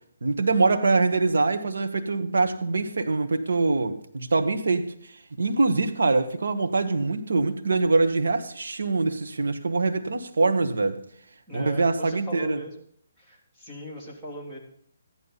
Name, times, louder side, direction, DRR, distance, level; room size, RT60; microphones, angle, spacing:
voice 1, 0.2-4.9 5.4-11.0 11.5-12.6, right 3 dB, 80° right, 8 dB, 1.5 m, -24 dB
voice 2, 11.5-12.7 13.2-14.6, equal, 10° right, -5 dB, 3.3 m, -39 dB
14.0 x 11.0 x 4.1 m, 0.65 s
hypercardioid pair, 160°, 0 cm